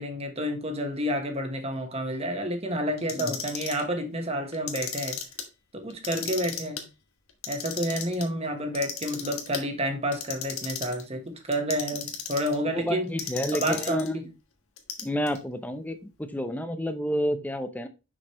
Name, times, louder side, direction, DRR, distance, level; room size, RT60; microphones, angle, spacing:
voice 1, 0.0-5.2 5.7-6.8 7.5-13.1 13.5-14.2, equal, 30° right, 1.3 m, -29 dB
Clock, 3.0-3.8 4.5-5.4 5.9-6.8 7.3-8.2 8.7-9.6 10.1-11.0 11.5-12.6 13.2-14.1 14.8-15.4, left 8 dB, 90° left, 1.5 m, -35 dB
voice 2, 12.7-14.2 15.0-17.9, equal, 10° left, 0.7 m, -30 dB
6.4 x 6.2 x 3.1 m
head